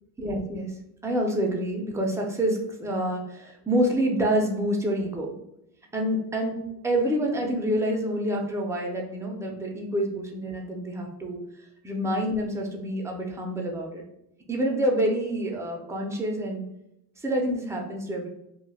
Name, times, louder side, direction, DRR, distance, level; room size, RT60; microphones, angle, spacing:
voice 1, 0.2-0.7 1.0-5.3 5.9-11.4 11.8-14.0 14.5-16.7 17.2-18.3, right 1 dB, 5° right, 0 dB, 0.4 m, -27 dB
2.3 x 2.2 x 3.3 m, 0.80 s
supercardioid pair, 85°, 48 cm